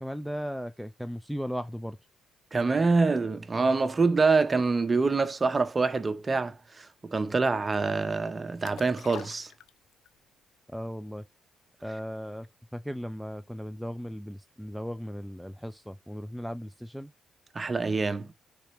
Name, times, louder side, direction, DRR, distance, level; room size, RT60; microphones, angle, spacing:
voice 1, 0.0-2.0 10.7-11.2 11.8-17.1, equal, ahead, 0.3 m, -37 dB
voice 2, 2.5-9.5 17.5-18.3, right 4 dB, 30° right, 0.7 m, -26 dB
sound 1, 8.6-10.2 10.5-10.6, left 10 dB, 85° left, 0.5 m, -45 dB
10.0 x 3.8 x 3.0 m
cardioid pair, 90°, 0 cm